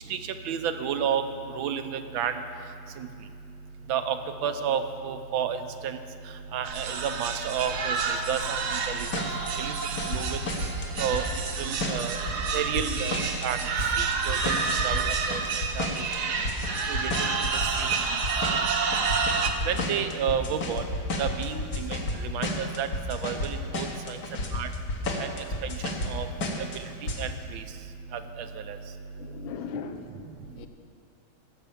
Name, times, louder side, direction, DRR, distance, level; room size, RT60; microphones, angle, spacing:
voice 1, 0.4-1.2 1.6-2.3 3.9-4.2 4.4-5.6 5.8-6.0 6.5-8.6 8.9-9.1 9.6-9.7 10.1-10.4 11.0-11.2 11.6-12.2 12.5-13.6 14.0-15.4 15.8-15.9 16.9-17.1 17.8-18.2 19.7-20.8 21.2-22.0 22.3-24.2 24.5-24.7 25.2-25.3 26.1-26.3 27.2-27.6 28.7-28.8, right 8 dB, 75° right, 8 dB, 1.4 m, -30 dB
sound 1, 6.6-19.5, right 5 dB, 60° right, 1.3 m, -29 dB
sound 2, 9.1-9.5 9.8-11.5 11.8-13.5 13.8-22.2 22.4-23.5 23.7-26.1 26.4-26.8 27.1-27.2, left 2 dB, 50° left, 1.6 m, -31 dB
voice 2, 29.2-30.7, left 6 dB, 75° left, 8 dB, 1.5 m, -39 dB
15.5 x 6.6 x 7.1 m, 2.4 s
omnidirectional pair, 2.3 m